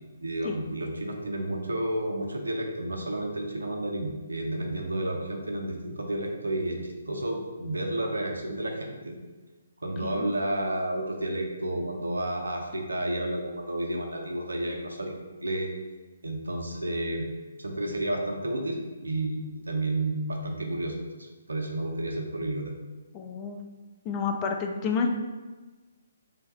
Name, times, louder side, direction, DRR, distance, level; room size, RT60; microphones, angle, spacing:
voice 1, 0.2-9.1 9.8-15.7 16.2-17.3 17.6-22.7, right 1 dB, 85° right, 2 dB, 0.6 m, -31 dB
voice 2, 23.1-23.6 24.1-25.1, left 5 dB, 25° left, 3 dB, 0.4 m, -29 dB
3.4 x 2.3 x 4.1 m, 1.2 s
figure-of-eight pair, 140°, 0 cm